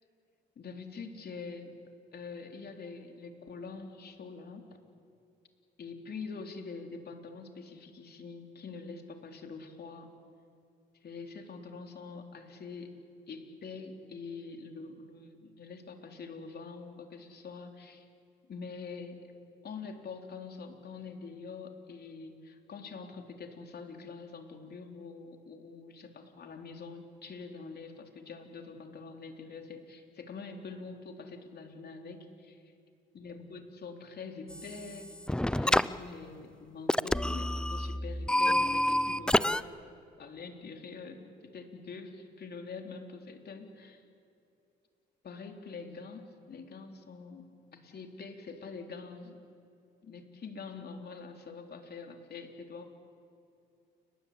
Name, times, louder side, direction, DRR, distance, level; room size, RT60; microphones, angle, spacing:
voice 1, 0.6-1.8 2.1-4.7 5.8-10.1 11.0-13.0 13.3-18.1 18.5-19.2 19.6-32.7 33.1-35.2 35.5-39.6 40.2-44.0 45.2-49.4 50.0-52.9, left 4 dB, 55° left, 4 dB, 3.7 m, -45 dB
sound 1, 34.5-35.0 35.3-35.9 36.9-39.6, left 1 dB, 5° left, 0.6 m, -28 dB
29.5 x 20.5 x 8.7 m, 2.6 s
cardioid pair, 90°, 20 cm